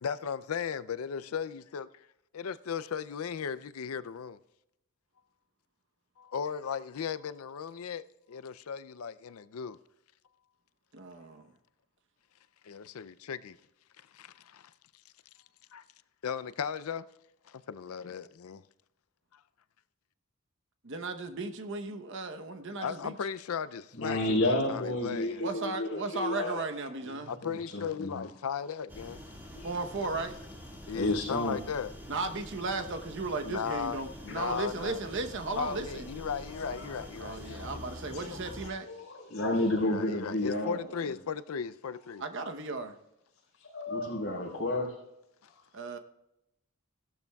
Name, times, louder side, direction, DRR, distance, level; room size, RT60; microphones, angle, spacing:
voice 1, 0.0-1.9 2.3-4.4 6.2-9.8 12.6-13.6 14.1-14.7 15.7-15.8 16.2-17.1 17.5-18.6 22.8-25.5 27.3-29.2 30.9-31.9 33.4-35.0 35.5-37.9 38.2-38.4 39.9-42.2, left 7 dB, 85° left, 0.5 m, -36 dB
voice 2, 10.9-11.5 20.8-23.1 25.4-27.3 29.6-30.4 32.1-36.1 37.2-38.9 42.2-42.9 45.7-46.0, right 3 dB, 60° right, 0.9 m, -35 dB
voice 3, 23.9-26.7 27.0-28.2 29.5-29.7 30.9-31.6 34.3-34.5 36.5-37.0 37.4-38.3 38.6-41.1 43.6-44.9, left 1 dB, 65° left, 4.1 m, -32 dB
sound 1, 28.9-38.7, equal, 10° right, 1.9 m, -46 dB
16.0 x 12.0 x 2.3 m
head